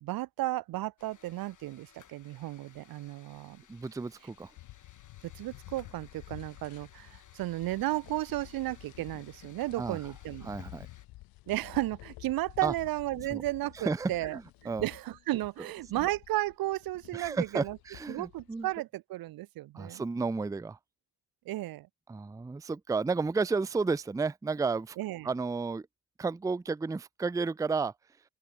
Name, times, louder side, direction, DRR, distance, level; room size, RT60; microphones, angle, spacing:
voice 1, 0.0-3.6 5.2-10.5 11.5-17.8 18.1-20.0 21.4-21.9 25.0-25.3, right 16 dB, 75° right, 1.2 m, -34 dB
sound 1, 1.0-11.1, left 8 dB, 55° left, 3.8 m, -59 dB
voice 2, 3.7-4.5 9.8-10.0 10.4-10.9 12.6-12.7 13.3-13.4 13.7-14.9 16.0-16.1 17.1-18.7 19.7-20.8 22.1-25.0 25.2-25.9 26.2-27.9, right 4 dB, 10° right, 0.5 m, -32 dB
sound 2, 4.6-18.8, left 19 dB, 80° left, 1.2 m, -51 dB
open air
supercardioid pair, 55°, 35 cm